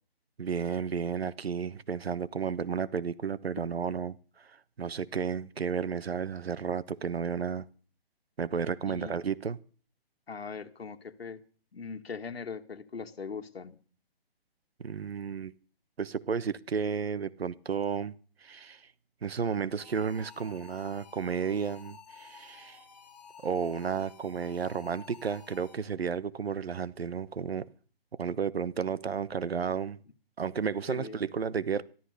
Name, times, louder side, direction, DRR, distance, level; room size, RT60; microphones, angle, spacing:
voice 1, 0.4-7.7 8.4-9.6 14.8-15.5 16.0-18.1 18.4-18.9 19.2-22.8 23.4-27.7 28.1-30.0 30.4-31.8, right 6 dB, 80° right, 1.1 m, -32 dB
voice 2, 8.9-9.2 10.3-11.4 11.7-13.8 30.9-31.3, left 5 dB, 75° left, 1.9 m, -40 dB
sound 1, 19.8-26.1, left 6 dB, 40° left, 2.1 m, -53 dB
14.0 x 13.5 x 6.6 m
hypercardioid pair, 175°, 30 cm